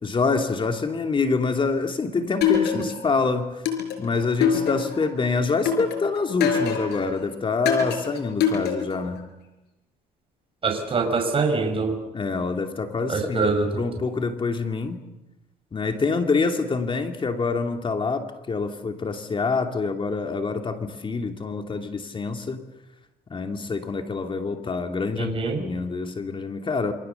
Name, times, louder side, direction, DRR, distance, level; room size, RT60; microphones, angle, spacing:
voice 1, 0.0-3.6 4.0-9.3 12.1-15.0 15.7-22.6 23.3-26.9, left 4 dB, 30° left, 6 dB, 2.6 m, -26 dB
sound 1, 2.4-3.2 3.7-5.1 5.7-7.1 7.7-9.1, left 7 dB, 80° left, 5.5 m, -24 dB
voice 2, 10.6-12.0 13.1-13.8 25.2-25.6, right 4 dB, 30° right, 4 dB, 5.8 m, -24 dB
28.5 x 25.0 x 7.0 m, 0.97 s
cardioid pair, 110°, 17 cm